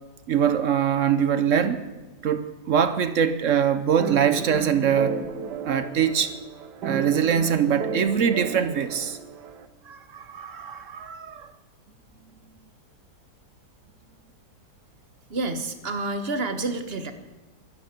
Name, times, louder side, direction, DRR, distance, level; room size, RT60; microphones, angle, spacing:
voice 1, 0.3-1.9 2.2-5.2 5.6-6.3 6.8-9.2 9.9-11.5, right 8 dB, 55° right, 1.0 m, -23 dB
sound 1, 4.0-9.7, right 6 dB, 85° right, 1.7 m, -34 dB
voice 2, 15.3-17.1, right 2 dB, 40° right, 1.3 m, -29 dB
12.5 x 11.5 x 8.1 m
omnidirectional pair, 1.8 m